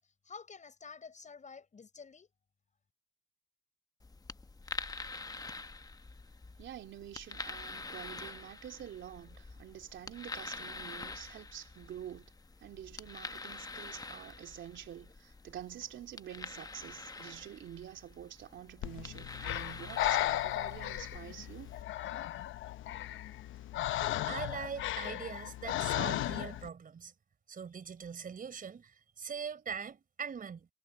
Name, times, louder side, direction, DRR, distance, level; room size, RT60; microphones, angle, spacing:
voice 1, 0.0-2.3, left 5 dB, 40° left, 6.4 m, -50 dB
sound 1, 4.0-21.8, left 3 dB, 20° left, 0.9 m, -46 dB
voice 2, 6.6-12.3 12.6-21.7, right 10 dB, 70° right, 3.3 m, -47 dB
Breathing, 18.8-26.7, left 14 dB, 80° left, 0.8 m, -35 dB
voice 3, 24.3-27.1 27.5-30.7, right 6 dB, 45° right, 4.4 m, -42 dB
cardioid pair, 90°, 20 cm